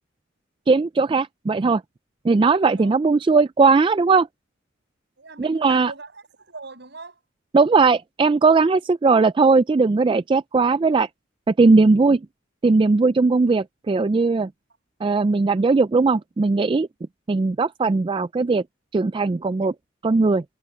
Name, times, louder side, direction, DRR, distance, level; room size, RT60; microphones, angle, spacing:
voice 1, 0.7-1.8 2.2-4.3 5.4-5.9 7.5-11.1 11.5-12.2 12.6-14.5 15.0-16.9 17.3-18.6 18.9-19.7 20.0-20.4, right 4 dB, 25° right, 0.3 m, -18 dB
voice 2, 5.2-7.2, right 3 dB, 60° right, 6.8 m, -40 dB
head